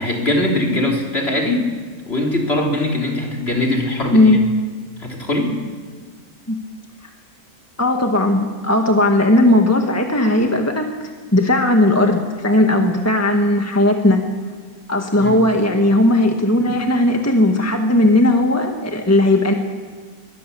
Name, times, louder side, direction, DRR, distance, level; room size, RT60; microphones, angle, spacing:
voice 1, 0.0-1.7 2.1-4.4 5.0-5.5 15.2-15.3, left 1 dB, 40° left, 0 dB, 3.6 m, -21 dB
voice 2, 7.8-10.9 11.3-14.2 14.9-19.5, left 1 dB, 10° left, 3 dB, 1.5 m, -16 dB
22.0 x 21.5 x 7.0 m, 1.5 s
omnidirectional pair, 1.6 m